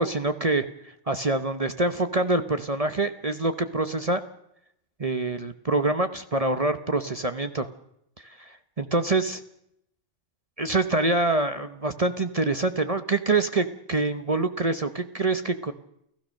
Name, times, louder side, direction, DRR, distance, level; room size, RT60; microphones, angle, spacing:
voice 1, 0.0-4.2 5.0-7.7 8.2-9.4 10.6-15.7, right 2 dB, 30° right, 9 dB, 1.0 m, -25 dB
29.0 x 15.5 x 6.5 m, 0.76 s
omnidirectional pair, 1.3 m